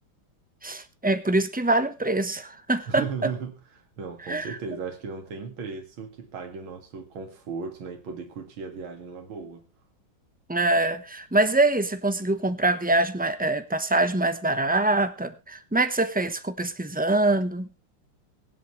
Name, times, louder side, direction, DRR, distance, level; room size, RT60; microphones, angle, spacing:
voice 1, 0.6-3.3 4.3-4.6 10.5-17.7, right 2 dB, 10° right, 0.4 m, -24 dB
voice 2, 2.9-3.5 4.0-9.7, right 5 dB, 75° right, 2.8 m, -36 dB
24.0 x 8.3 x 3.2 m
omnidirectional pair, 2.3 m